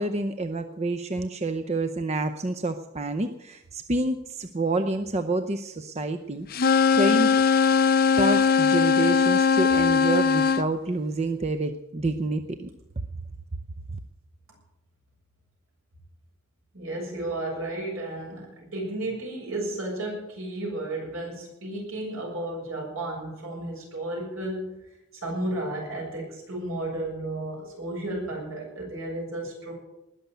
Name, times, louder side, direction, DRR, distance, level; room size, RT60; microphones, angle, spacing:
voice 1, 0.0-6.5 6.9-7.3 8.2-12.7, right 2 dB, 30° right, 8 dB, 0.7 m, -28 dB
sound 1, 6.5-10.6, left 6 dB, 45° left, 0.6 m, -20 dB
voice 2, 16.7-24.8 25.2-29.7, right 1 dB, 75° right, -1 dB, 7.3 m, -33 dB
20.0 x 6.8 x 9.2 m, 0.90 s
head